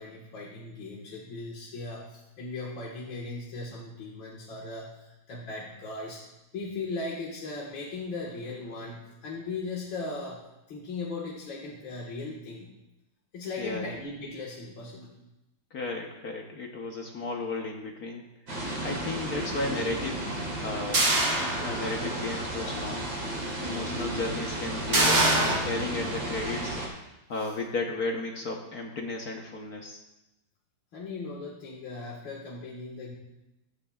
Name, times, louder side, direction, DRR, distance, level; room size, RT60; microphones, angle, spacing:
voice 1, 0.0-6.2 6.5-10.4 10.7-12.7 13.3-15.2 27.4-27.5 30.9-33.2, left 3 dB, 70° left, -4 dB, 2.4 m, -38 dB
voice 2, 13.6-13.9 15.7-18.2 18.8-20.3 20.6-23.1 23.6-26.8 27.3-30.0, left 3 dB, 55° left, 1 dB, 1.3 m, -34 dB
sound 1, 18.5-26.9, right 1 dB, 65° right, 3.8 m, -33 dB
sound 2, 20.9-22.2 22.6-22.7 24.9-25.6, right 2 dB, 45° right, 2.3 m, -24 dB
16.0 x 13.5 x 2.4 m, 0.96 s
omnidirectional pair, 2.2 m